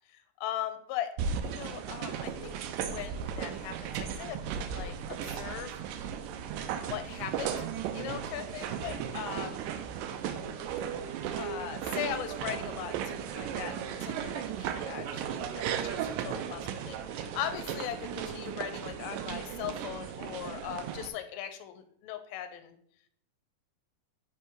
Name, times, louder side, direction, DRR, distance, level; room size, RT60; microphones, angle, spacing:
voice 1, 0.4-1.1 1.4-2.6 2.9-4.4 4.6-5.8 6.8-7.7 7.9-9.6 11.1-22.8, left 10 dB, 85° left, 8 dB, 2.4 m, -39 dB
sound 1, 1.2-21.1, right 8 dB, 80° right, 2.0 m, -36 dB
7.9 x 3.5 x 4.5 m, 0.67 s
omnidirectional pair, 4.3 m